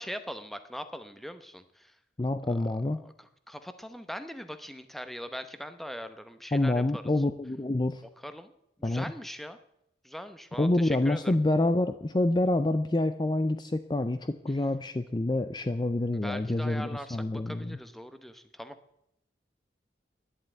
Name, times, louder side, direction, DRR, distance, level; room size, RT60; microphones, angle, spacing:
voice 1, 0.0-1.9 2.4-7.0 8.2-8.5 8.8-9.6 10.0-11.4 16.2-17.2 17.5-18.8, equal, ahead, 10 dB, 0.9 m, -41 dB
voice 2, 2.2-3.0 6.5-8.0 8.8-9.1 10.6-17.8, left 2 dB, 25° left, 10 dB, 0.5 m, -27 dB
11.5 x 10.5 x 8.9 m, 0.79 s
head